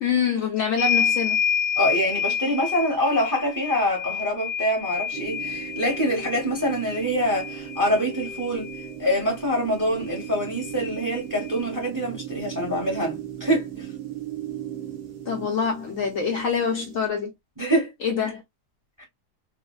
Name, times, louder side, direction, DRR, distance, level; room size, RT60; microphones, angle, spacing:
voice 1, 0.0-1.4 15.3-17.3 18.0-18.4, left 6 dB, 65° left, 0.9 m, -25 dB
sound 1, 0.8-8.9 10.2-10.3 10.5-11.6, left 7 dB, 85° left, 1.2 m, -29 dB
voice 2, 1.8-8.7 9.0-13.9 17.6-17.9 19.0-19.1, equal, 15° right, 0.9 m, -25 dB
sound 2, 5.1-17.1, right 11 dB, 75° right, 1.3 m, -37 dB
3.7 x 2.1 x 2.3 m
omnidirectional pair, 1.7 m